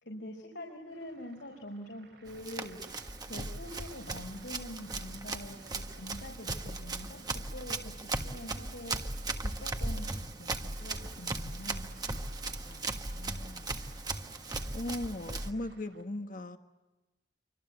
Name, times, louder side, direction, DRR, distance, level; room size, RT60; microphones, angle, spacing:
voice 1, 0.0-2.8 3.3-9.0 9.4-10.5 10.8-11.9, left 1 dB, 80° left, 0 dB, 4.9 m, -45 dB
sound 1, 0.9-16.0, right 3 dB, 80° right, 6.3 m, -61 dB
Run, 2.3-15.5, right 2 dB, 20° right, 1.5 m, -37 dB
voice 2, 12.7-13.8 14.7-16.6, left 1 dB, 50° left, 7 dB, 1.5 m, -39 dB
28.0 x 25.5 x 8.1 m, 1.1 s
head